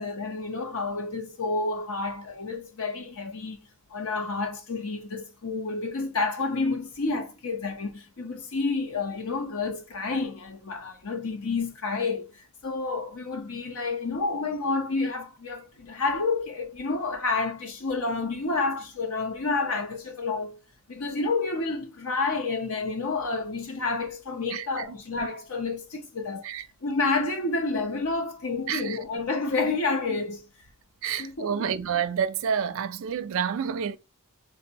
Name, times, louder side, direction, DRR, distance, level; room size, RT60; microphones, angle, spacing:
voice 1, 0.0-3.6 3.9-20.6 20.9-26.5 26.8-30.4 31.1-31.7, left 3 dB, 75° left, 0.9 m, -29 dB
voice 2, 24.5-24.8 26.4-26.6 28.7-29.0 31.0-34.0, right 7 dB, 60° right, 0.4 m, -29 dB
3.5 x 2.6 x 2.8 m
head